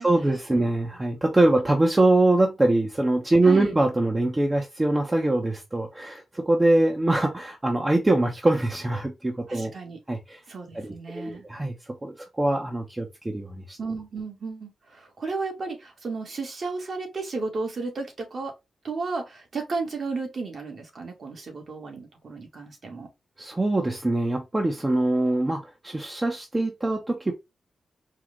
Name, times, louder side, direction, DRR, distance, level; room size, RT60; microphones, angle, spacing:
voice 1, 0.0-9.7 10.1-10.4 10.7-11.8 12.0-13.8 23.4-27.3, right 2 dB, 20° right, 1.0 m, -23 dB
voice 2, 3.4-3.7 9.5-10.0 10.5-11.5 13.8-18.5 18.8-23.1, right 4 dB, 60° right, 2.0 m, -33 dB
4.7 x 2.5 x 3.7 m
cardioid pair, 70°, 0 cm